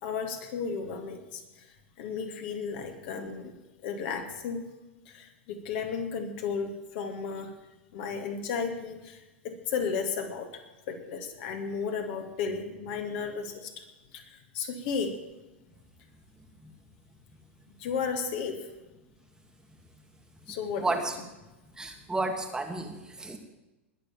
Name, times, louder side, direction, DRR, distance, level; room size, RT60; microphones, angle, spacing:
voice 1, 0.0-1.7 2.0-3.5 3.8-4.7 5.1-7.5 7.9-13.9 14.1-15.1 17.8-18.7 20.5-21.0, left 5 dB, 55° left, 5 dB, 2.3 m, -34 dB
voice 2, 20.8-21.1 21.8-23.4, right 2 dB, 10° right, 4 dB, 1.6 m, -32 dB
20.5 x 6.9 x 7.2 m, 1.1 s
figure-of-eight pair, 95°, 7 cm